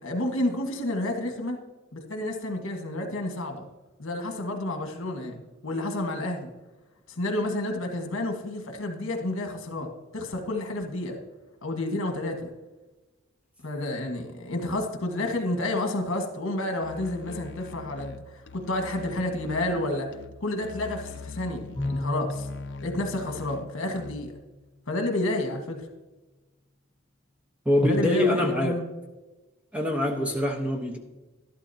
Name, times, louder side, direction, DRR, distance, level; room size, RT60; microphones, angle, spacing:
voice 1, 0.0-1.6 1.9-3.7 4.0-6.5 7.1-11.2 11.6-12.5 13.6-20.1 20.4-22.5 22.8-24.3 24.9-25.9 27.8-28.9, left 1 dB, 75° left, 3 dB, 1.5 m, -30 dB
Musical instrument, 16.8-24.4, left 5 dB, 55° left, 0.5 m, -44 dB
Bowed string instrument, 21.8-24.4, left 2 dB, 30° left, 1.5 m, -35 dB
voice 2, 27.6-28.8 29.7-31.0, left 1 dB, 5° right, 1 dB, 1.0 m, -24 dB
12.0 x 12.0 x 2.8 m, 1.2 s
head